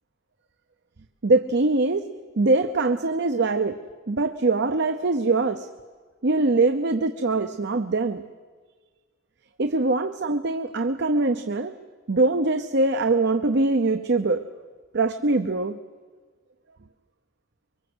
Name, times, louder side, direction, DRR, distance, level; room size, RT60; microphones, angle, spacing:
voice 1, 1.2-2.1 2.4-3.8 4.1-5.7 6.2-8.2 9.6-11.7 12.1-14.4 14.9-15.8, right 3 dB, 55° right, 8 dB, 0.8 m, -22 dB
24.5 x 23.0 x 8.0 m, 1.5 s
head